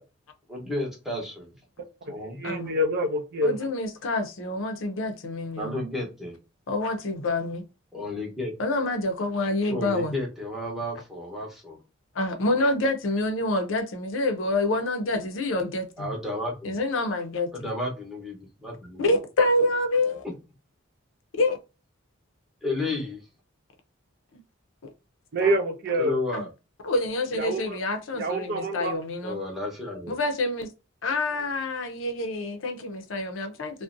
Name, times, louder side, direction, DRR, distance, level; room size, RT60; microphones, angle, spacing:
voice 1, 0.5-1.5 2.1-2.4 5.6-6.4 7.9-8.5 9.7-11.8 16.0-16.8 17.5-19.1 20.2-20.3 22.6-23.2 26.0-26.5 29.2-30.2, left 2 dB, ahead, 0.8 m, -32 dB
voice 2, 2.4-3.6 25.3-26.2 27.3-27.8 28.1-28.9, right 1 dB, 50° right, 0.5 m, -26 dB
voice 3, 3.4-5.8 6.7-7.6 8.6-10.2 12.2-16.1 16.6-17.5 19.0-20.2 21.4-21.6 25.4-25.5 26.3-26.4 26.8-29.4 30.1-30.7 31.0-33.8, left 2 dB, 65° left, 0.5 m, -27 dB
2.5 x 2.1 x 2.5 m
head